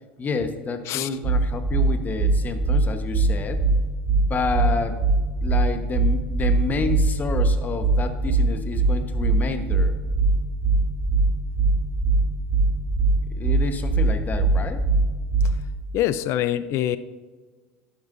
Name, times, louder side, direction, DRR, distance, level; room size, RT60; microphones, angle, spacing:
voice 1, 0.2-3.6 4.2-5.0 5.4-9.9 13.3-14.8, left 4 dB, 30° left, 8 dB, 1.1 m, -29 dB
sound 1, 1.2-15.7, right 3 dB, 60° right, 1.9 m, -21 dB
voice 2, 15.9-17.0, left 12 dB, 55° left, 15 dB, 0.4 m, -24 dB
11.5 x 9.5 x 2.6 m, 1.4 s
hypercardioid pair, 85°, 6 cm